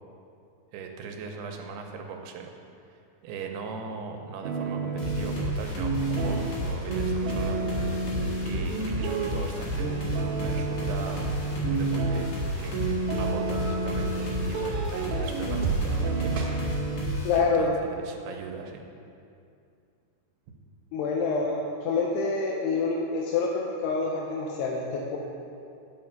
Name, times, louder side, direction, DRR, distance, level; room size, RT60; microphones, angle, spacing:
voice 1, 0.7-2.5 3.2-7.8 8.4-11.3 11.7-12.3 12.6-12.7 13.1-16.4 17.3-18.8, right 5 dB, 85° right, 3 dB, 2.7 m, -39 dB
sound 1, 4.4-17.1, right 3 dB, 65° right, 2.5 m, -30 dB
sound 2, 5.0-17.4, left 1 dB, 60° left, 3.1 m, -32 dB
voice 2, 17.2-17.7 20.9-25.2, left 4 dB, 85° left, -1 dB, 2.8 m, -27 dB
11.5 x 5.6 x 5.6 m, 2.5 s
omnidirectional pair, 4.6 m